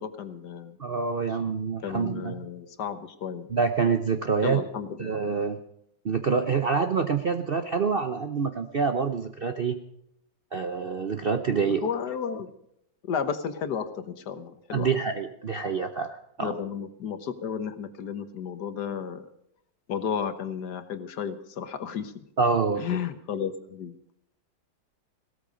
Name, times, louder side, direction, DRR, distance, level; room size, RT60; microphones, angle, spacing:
voice 1, 0.0-0.8 1.8-3.5 4.4-5.3 11.8-12.5 13.1-14.9 16.4-19.3 19.9-22.1 22.8-24.0, left 7 dB, 65° left, 11 dB, 1.7 m, -33 dB
voice 2, 0.8-2.5 3.5-4.6 5.0-5.6 6.0-9.8 10.5-11.9 14.7-16.5 22.4-22.8, right 5 dB, 50° right, 8 dB, 0.7 m, -26 dB
17.0 x 13.5 x 5.1 m, 0.75 s
omnidirectional pair, 2.0 m